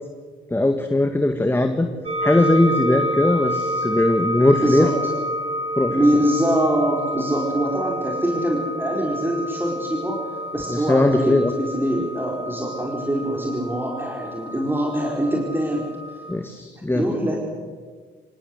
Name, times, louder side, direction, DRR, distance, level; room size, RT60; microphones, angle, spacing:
voice 1, 0.5-1.9 2.2-4.9 5.8-6.0 10.7-11.5 16.3-17.1, left 1 dB, 10° left, 6 dB, 1.8 m, -19 dB
sound 1, 2.1-16.3, equal, 30° right, 2.8 m, -29 dB
voice 2, 4.6-5.1 5.9-10.2 10.5-15.9 16.9-17.4, right 1 dB, 10° right, -1 dB, 4.7 m, -23 dB
26.0 x 18.0 x 8.1 m, 1.5 s
cardioid pair, 90°, 20 cm